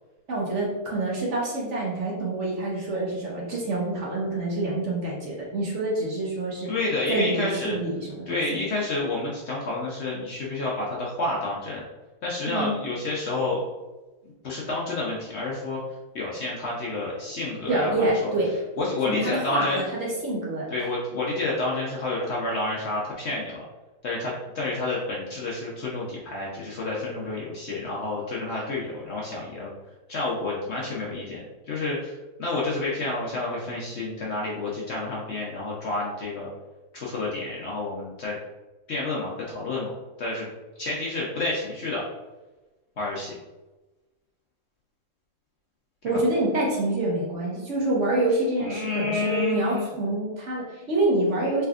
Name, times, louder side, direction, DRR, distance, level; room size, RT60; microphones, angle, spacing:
voice 1, 0.3-6.7 7.1-8.6 12.5-12.8 17.7-18.5 19.0-20.7 46.0-51.7, right 2 dB, 55° right, -4 dB, 1.0 m, -27 dB
voice 2, 6.7-7.8 8.3-11.8 12.2-13.6 14.4-15.8 16.1-18.3 18.8-19.8 20.7-23.6 24.0-29.7 30.1-36.5 36.9-38.4 38.9-39.9 40.2-40.5 40.8-42.0 43.0-43.3 48.6-49.9, left 2 dB, 60° left, -4 dB, 0.8 m, -29 dB
3.4 x 3.3 x 2.4 m, 1.1 s
omnidirectional pair, 1.6 m